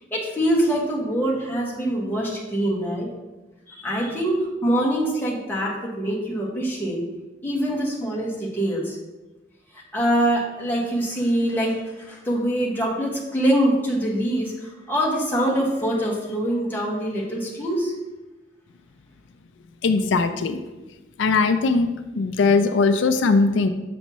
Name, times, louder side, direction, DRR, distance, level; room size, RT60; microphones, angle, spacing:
voice 1, 0.1-3.1 3.7-7.0 7.4-9.0 9.7-17.9, right 1 dB, 10° left, -5 dB, 1.3 m, -24 dB
voice 2, 19.8-20.6 21.2-21.9 22.2-23.7, left 4 dB, 85° left, 9 dB, 0.4 m, -19 dB
6.9 x 5.4 x 3.0 m, 1.1 s
head